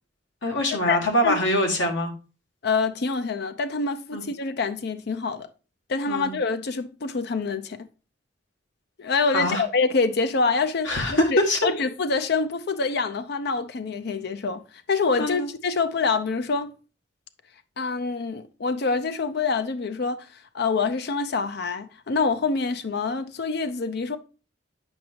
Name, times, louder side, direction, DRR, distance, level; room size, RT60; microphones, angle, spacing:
voice 1, 0.4-2.1 4.1-4.2 6.1-6.3 9.3-9.6 10.9-11.6 15.2-15.5, left 1 dB, 80° left, 1.8 m, -23 dB
voice 2, 2.6-5.5 5.9-7.9 9.0-16.7 17.8-20.3 20.5-24.2, left 4 dB, 60° left, 0.6 m, -26 dB
8.8 x 5.2 x 2.8 m
head